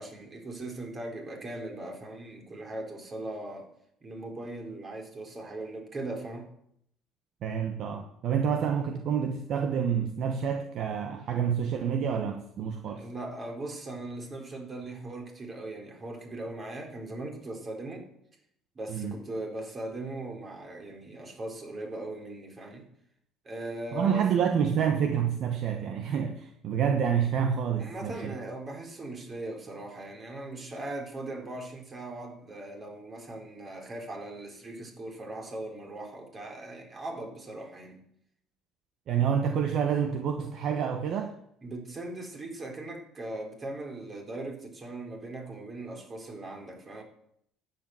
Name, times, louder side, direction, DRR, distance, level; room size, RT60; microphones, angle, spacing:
voice 1, 0.0-3.7 4.0-6.5 12.9-18.1 18.8-22.9 23.4-24.4 27.8-38.0 41.6-47.0, right 2 dB, 30° right, 2 dB, 3.8 m, -39 dB
voice 2, 7.4-13.0 18.9-19.1 23.9-28.3 39.1-41.3, right 7 dB, 60° right, 4 dB, 1.2 m, -28 dB
10.5 x 8.1 x 7.7 m, 0.73 s
supercardioid pair, 95°, 0 cm